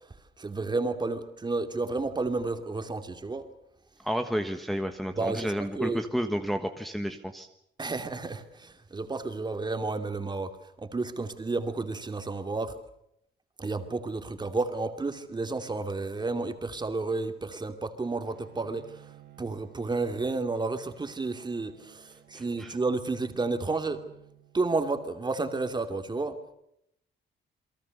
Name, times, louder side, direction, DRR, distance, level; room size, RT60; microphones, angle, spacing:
voice 1, 0.4-3.5 5.2-6.0 7.8-10.5 10.8-12.7 13.6-19.1 19.4-24.0 24.5-26.5, right 3 dB, 25° right, 7 dB, 2.8 m, -31 dB
voice 2, 4.0-7.5 22.6-22.7, equal, ahead, 5 dB, 1.4 m, -31 dB
Bowed string instrument, 18.2-24.9, right 12 dB, 75° right, 3.8 m, -56 dB
29.0 x 23.0 x 6.7 m, 0.76 s
cardioid pair, 135°, 19 cm